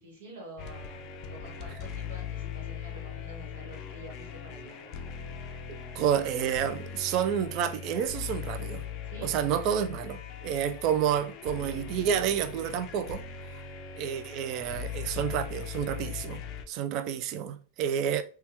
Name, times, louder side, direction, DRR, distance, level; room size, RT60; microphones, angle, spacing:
voice 1, 0.0-4.8 9.0-9.4, right 1 dB, 80° right, 1.2 m, -48 dB
sound 1, 0.6-16.6, left 7 dB, 40° left, 0.4 m, -40 dB
voice 2, 5.9-8.8 9.2-13.2 14.0-16.4 16.7-18.2, right 9 dB, 45° right, 0.3 m, -29 dB
3.4 x 2.2 x 2.9 m
supercardioid pair, 135°, 0 cm